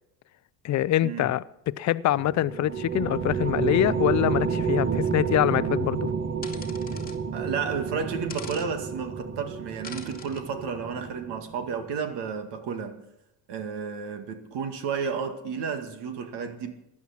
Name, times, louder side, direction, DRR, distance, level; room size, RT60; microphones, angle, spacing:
voice 1, 0.6-6.1, left 13 dB, 40° left, 0.5 m, -25 dB
sound 1, 2.1-11.9, right 6 dB, 30° right, 1.0 m, -30 dB
sound 2, 6.4-7.2 8.3-8.7 9.8-10.4, left 5 dB, 20° left, 2.1 m, -42 dB
voice 2, 7.3-13.0 13.5-16.7, right 6 dB, 65° right, 2.0 m, -32 dB
15.5 x 11.0 x 5.9 m
supercardioid pair, 105°, 45 cm